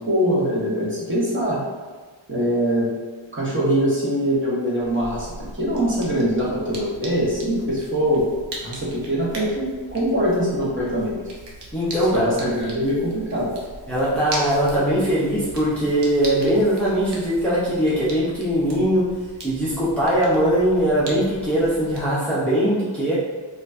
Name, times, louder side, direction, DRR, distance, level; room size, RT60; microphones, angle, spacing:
voice 1, 0.0-1.6 2.3-2.9 3.3-5.3 5.6-8.3 8.6-11.2 12.1-13.5, equal, 25° right, -7 dB, 1.0 m, -23 dB
sound 1, 4.8-22.1, right 2 dB, 60° right, 0.8 m, -39 dB
voice 2, 11.7-12.3 13.9-19.1 19.4-23.1, equal, 5° left, -10 dB, 0.6 m, -21 dB
4.3 x 2.5 x 2.6 m, 1.4 s
wide cardioid pair, 140°, 47 cm